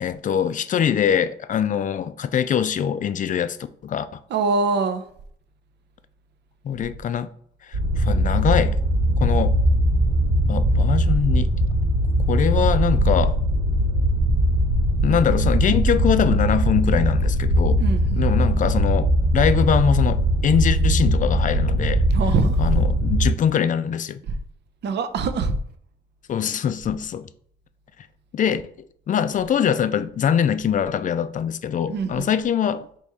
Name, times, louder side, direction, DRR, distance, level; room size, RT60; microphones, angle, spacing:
voice 1, 0.0-3.6 3.8-4.2 6.6-7.3 7.6-8.8 9.2-9.6 10.5-11.5 12.3-13.4 15.0-17.8 18.2-22.1 22.6-24.2 26.3-27.3 28.3-28.7 29.1-32.9, left 8 dB, 40° left, 0.4 m, -23 dB
voice 2, 4.3-5.0 17.8-18.3 22.1-22.7 24.8-25.5 31.9-32.3, right 4 dB, 60° right, 0.5 m, -23 dB
sound 1, 7.7-23.3, equal, 90° right, 1.6 m, -20 dB
4.2 x 3.0 x 3.5 m
cardioid pair, 90°, 20 cm